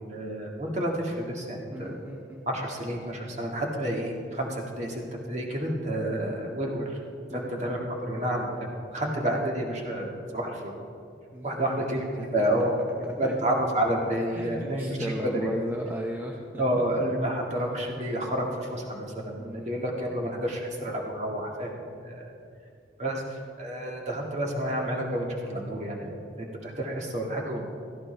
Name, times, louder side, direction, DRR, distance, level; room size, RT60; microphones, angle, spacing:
voice 1, 0.0-1.9 2.5-5.0 5.3-7.0 7.3-8.5 8.9-10.7 11.4-12.1 12.3-12.8 13.2-15.0 15.4-15.5 16.6-21.7 22.0-22.3 23.0-27.6, right 1 dB, 40° right, -1 dB, 1.9 m, -30 dB
voice 2, 1.7-2.4 7.3-7.6 11.3-11.5 11.7-12.7 13.2-13.3 14.3-16.6 19.4-19.7 21.8-22.1, equal, 10° right, 0 dB, 0.7 m, -37 dB
17.0 x 14.0 x 3.3 m, 2.4 s
head